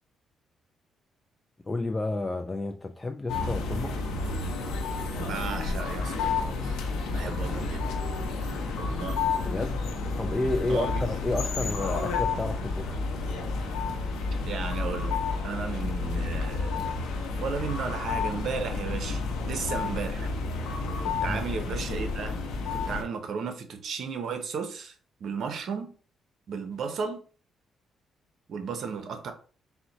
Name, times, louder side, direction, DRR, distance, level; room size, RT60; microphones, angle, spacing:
voice 1, 1.6-4.0 7.2-7.7 9.4-9.8 10.1-13.0 21.2-21.4, left 2 dB, 20° left, 0.3 m, -31 dB
sound 1, 3.3-23.0, left 4 dB, 85° left, 0.7 m, -30 dB
voice 2, 5.2-6.9 7.1-7.8 8.8-9.2 10.7-11.1 14.4-16.9 17.4-20.3 21.0-22.3 22.7-26.0 26.5-27.2 28.5-29.3, right 5 dB, 65° right, 0.8 m, -34 dB
4.2 x 2.2 x 4.0 m
cardioid pair, 90°, 0 cm